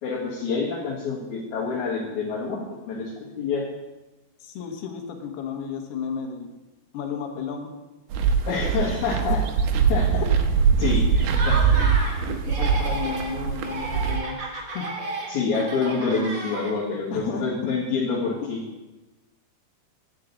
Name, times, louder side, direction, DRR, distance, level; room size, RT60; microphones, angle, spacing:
voice 1, 0.0-3.1 3.4-3.6 8.5-9.4 9.9-10.0 10.8-11.6 15.3-18.6, left 4 dB, 55° left, -7 dB, 2.7 m, -27 dB
voice 2, 4.4-6.5 6.9-7.7 9.2-9.4 10.2-10.3 10.7-10.8 11.8-11.9 12.3-14.4 14.7-14.9 17.1-17.5, left 6 dB, 80° left, 4 dB, 3.2 m, -33 dB
sound 1, 8.1-14.2, right 6 dB, 75° right, 2.0 m, -22 dB
Laughter, 11.2-12.2 12.4-13.3 13.6-17.0, right 2 dB, 50° right, 1.4 m, -32 dB
10.5 x 5.0 x 8.2 m, 1.1 s
omnidirectional pair, 4.6 m